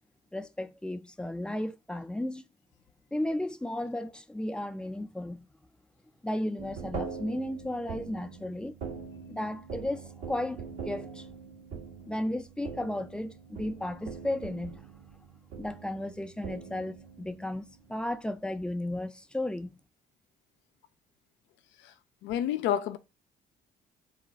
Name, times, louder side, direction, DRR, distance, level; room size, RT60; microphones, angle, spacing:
voice 1, 0.3-2.4 3.1-5.5 6.2-8.8 9.3-11.3 12.0-14.9 15.6-19.8, left 1 dB, 5° left, 0.4 m, -34 dB
sound 1, 6.6-18.2, right 5 dB, 80° right, 1.0 m, -43 dB
voice 2, 22.2-23.0, left 10 dB, 70° left, 0.4 m, -29 dB
2.4 x 2.2 x 3.9 m
hypercardioid pair, 55°, 20 cm